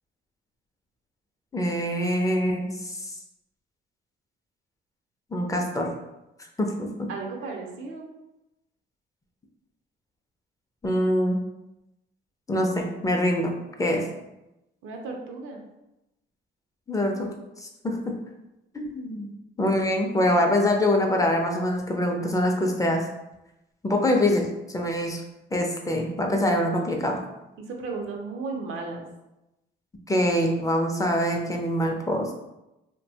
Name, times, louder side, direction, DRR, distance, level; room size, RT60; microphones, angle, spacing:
voice 1, 1.5-3.0 5.3-5.9 6.6-7.1 10.8-11.4 12.5-13.5 13.8-14.1 16.9-17.3 17.6-18.2 18.7-19.3 19.6-23.0 23.8-25.2 25.5-27.2 30.1-32.3, left 1 dB, 15° left, 2 dB, 0.4 m, -24 dB
voice 2, 7.1-8.1 14.8-15.6 27.6-29.0, right 4 dB, 85° right, 1 dB, 0.6 m, -34 dB
2.6 x 2.2 x 2.7 m, 0.94 s
cardioid pair, 90°, 20 cm